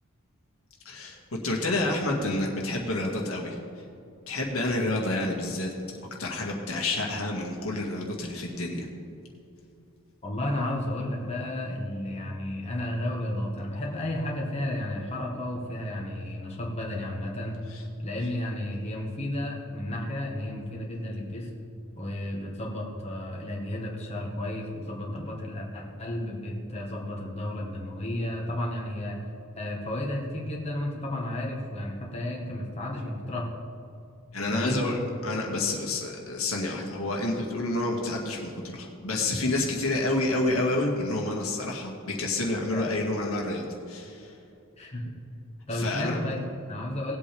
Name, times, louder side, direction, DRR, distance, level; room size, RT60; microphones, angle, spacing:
voice 1, 0.9-1.2 1.4-3.6 4.3-5.7 6.2-8.9 17.7-17.8 34.3-44.3 45.7-46.2, left 2 dB, 75° left, -1 dB, 2.0 m, -29 dB
voice 2, 10.2-17.6 18.0-21.5 22.0-29.2 29.6-33.5 34.5-34.8 42.7-42.9 44.8-45.1 45.7-47.2, left 1 dB, 30° left, -2 dB, 1.5 m, -32 dB
18.5 x 8.4 x 3.5 m, 2.6 s
head